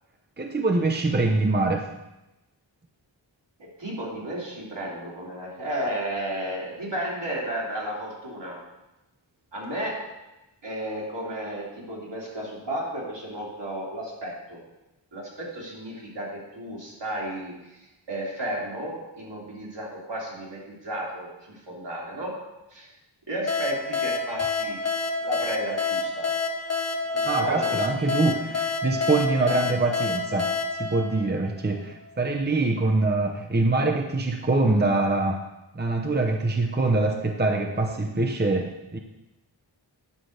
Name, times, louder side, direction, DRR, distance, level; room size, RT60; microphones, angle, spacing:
voice 1, 0.4-1.9 27.2-35.4 35.7-39.0, right 2 dB, 20° right, 3 dB, 0.8 m, -24 dB
voice 2, 3.6-8.6 9.5-10.1 10.6-14.6 15.1-17.8 18.1-22.4 22.7-22.9 23.3-24.8 25.2-26.3 27.1-27.9, right 1 dB, 70° right, -4 dB, 2.8 m, -33 dB
sound 1, 23.5-31.9, left 4 dB, 35° left, 1.0 m, -28 dB
9.5 x 3.8 x 6.4 m, 1.0 s
cardioid pair, 40°, 45 cm